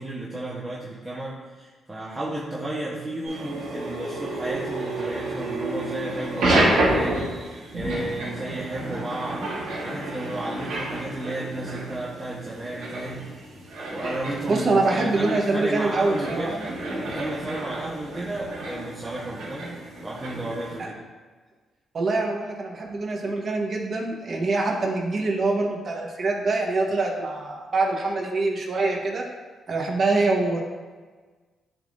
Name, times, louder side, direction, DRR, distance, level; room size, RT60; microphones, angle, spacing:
voice 1, 0.0-13.3 13.9-16.7 17.0-19.7 20.0-21.0, right 1 dB, 20° right, -6 dB, 1.1 m, -33 dB
sound 1, 3.2-20.8, right 1 dB, 80° right, 1.5 m, -30 dB
voice 2, 14.5-16.5 20.8-20.9 21.9-29.3 29.7-30.6, right 3 dB, 50° right, 0 dB, 1.2 m, -24 dB
11.0 x 3.7 x 2.6 m, 1.4 s
cardioid pair, 85°, 0 cm